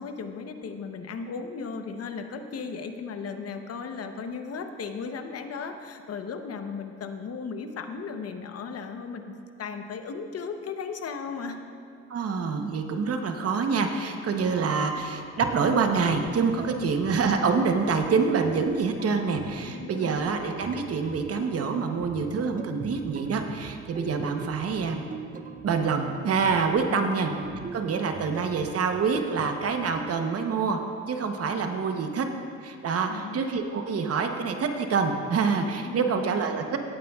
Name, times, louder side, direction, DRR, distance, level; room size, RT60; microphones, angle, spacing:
voice 1, 0.0-11.6 16.8-16.9 19.6-20.2 26.9-27.2 33.1-33.4 35.8-36.4, left 5 dB, 50° left, 7 dB, 0.9 m, -36 dB
voice 2, 12.1-25.0 25.6-27.3 27.7-30.8 31.1-32.3 32.6-36.8, right 5 dB, 50° right, 5 dB, 0.9 m, -26 dB
sound 1, 15.4-30.2, right 6 dB, 30° right, 0.4 m, -42 dB
16.5 x 9.2 x 2.4 m, 2.4 s
cardioid pair, 90°, 30 cm